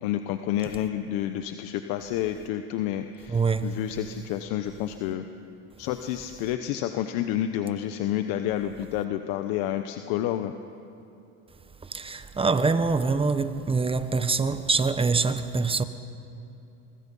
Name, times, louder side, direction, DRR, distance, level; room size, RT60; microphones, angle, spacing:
voice 1, 0.0-5.3 5.8-10.5, left 11 dB, 70° left, 1.1 m, -29 dB
voice 2, 3.3-3.7 11.8-15.8, right 4 dB, 15° right, 1.2 m, -24 dB
24.0 x 24.0 x 5.5 m
supercardioid pair, 110°, 35 cm